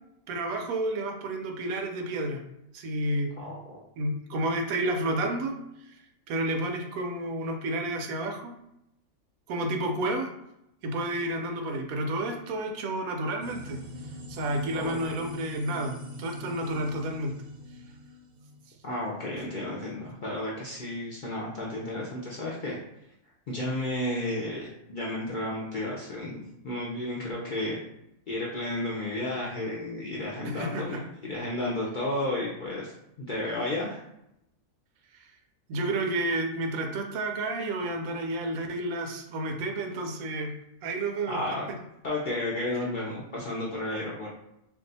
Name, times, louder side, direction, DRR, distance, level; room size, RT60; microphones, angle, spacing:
voice 1, 0.3-2.4 2.7-3.3 4.0-5.6 5.8-6.0 6.3-8.5 9.5-10.3 10.8-13.8 14.3-17.3 30.4-31.0 35.7-40.6 40.8-41.4, right 1 dB, 85° right, 4 dB, 1.0 m, -30 dB
voice 2, 3.4-3.8 14.7-15.3 18.8-22.8 23.5-27.8 28.3-32.9 33.2-34.0 41.3-41.6 42.0-44.3, left 1 dB, 60° left, -4 dB, 0.5 m, -32 dB
sound 1, 13.4-18.7, left 1 dB, 50° right, 0.6 m, -43 dB
2.6 x 2.3 x 3.9 m, 0.81 s
omnidirectional pair, 1.4 m